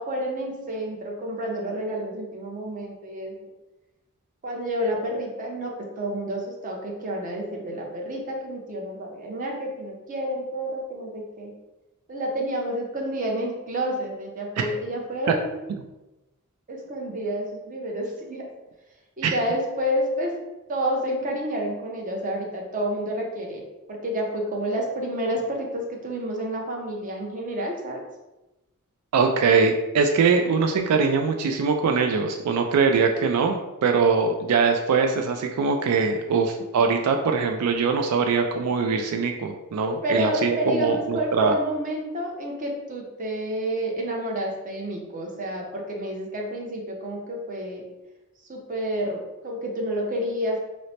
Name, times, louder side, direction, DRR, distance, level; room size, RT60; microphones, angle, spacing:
voice 1, 0.0-3.5 4.4-11.5 12.1-15.7 16.7-18.5 19.2-20.4 20.7-23.6 23.9-28.0 39.8-47.8 48.5-50.6, equal, 35° right, 0 dB, 0.6 m, -29 dB
voice 2, 29.1-41.6, right 5 dB, 85° right, 5 dB, 0.3 m, -22 dB
3.1 x 2.0 x 4.1 m, 1.0 s
head